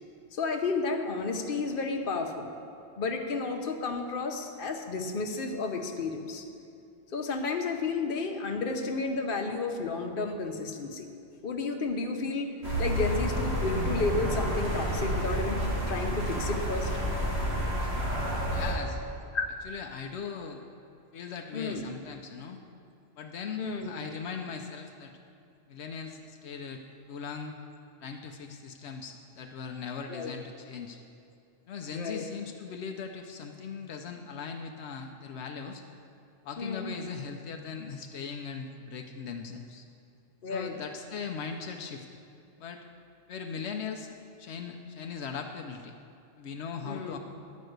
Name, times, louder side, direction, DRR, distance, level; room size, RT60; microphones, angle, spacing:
voice 1, 0.3-2.5 3.0-6.5 7.1-11.1 11.4-16.9 19.3-19.4 21.5-21.9 23.6-23.9 30.1-30.3 31.9-32.2 36.6-37.0 40.4-40.7 46.8-47.2, left 3 dB, 55° left, 4 dB, 1.0 m, -32 dB
sound 1, 12.6-18.7, equal, 75° right, 2.3 m, -30 dB
voice 2, 18.5-19.0 19.6-20.6 21.1-22.6 23.2-25.1 25.7-26.8 27.1-27.6 28.0-31.0 31.7-35.8 36.4-39.9 40.4-42.1 42.6-42.8 43.3-45.9 46.4-47.2, left 6 dB, 85° left, 4 dB, 0.9 m, -39 dB
11.0 x 5.3 x 7.9 m, 2.5 s
omnidirectional pair, 1.1 m